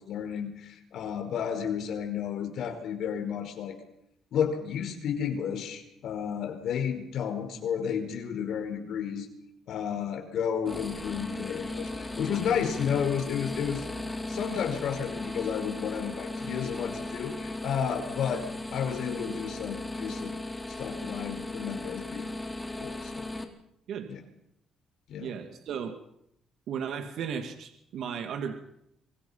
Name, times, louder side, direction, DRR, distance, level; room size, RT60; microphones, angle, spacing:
voice 1, 0.0-3.8 4.3-9.3 9.7-13.9 14.3-18.4 18.7-20.3 20.7-23.3 24.1-24.2 25.1-25.3, left 8 dB, 75° left, 6 dB, 4.8 m, -32 dB
sound 1, 10.6-23.4, left 2 dB, 10° left, 3.6 m, -37 dB
voice 2, 25.2-26.0 26.7-28.5, right 7 dB, 75° right, 6 dB, 2.6 m, -35 dB
26.0 x 22.5 x 5.8 m, 0.76 s
cardioid pair, 90°, 0 cm